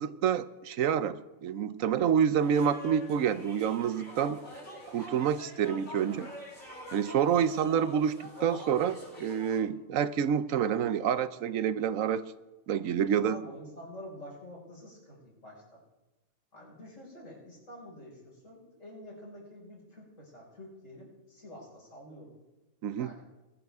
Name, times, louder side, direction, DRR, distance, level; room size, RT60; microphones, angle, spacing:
voice 1, 0.0-4.4 4.9-6.3 6.9-12.2 12.7-13.4 22.8-23.1, right 8 dB, 75° right, 14 dB, 1.1 m, -28 dB
sound 1, 2.4-9.6, equal, 35° left, 7.0 m, -45 dB
voice 2, 13.0-15.8 16.5-22.3 23.0-23.3, equal, 65° left, -3 dB, 5.8 m, -48 dB
22.0 x 12.0 x 3.6 m, 1.1 s
omnidirectional pair, 1.4 m